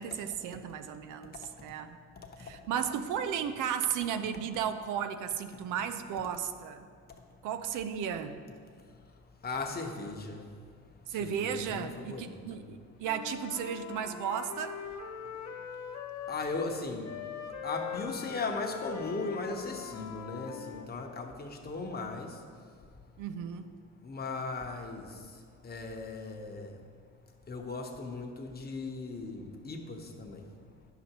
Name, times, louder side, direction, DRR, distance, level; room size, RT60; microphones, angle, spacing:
voice 1, 0.0-2.0 2.4-6.8 7.4-8.4 11.1-14.8 23.2-23.7, right 8 dB, 85° right, 9 dB, 0.5 m, -34 dB
voice 2, 9.4-10.4 11.1-12.6 16.3-17.1 17.6-22.4 24.0-25.4 25.6-26.8 27.5-30.5, left 3 dB, 30° left, 2 dB, 1.0 m, -37 dB
Wind instrument woodwind instrument, 13.0-16.7 17.0-20.9, left 8 dB, 65° left, 0.7 m, -42 dB
10.0 x 6.8 x 3.0 m, 2.1 s
cardioid pair, 90°, 30 cm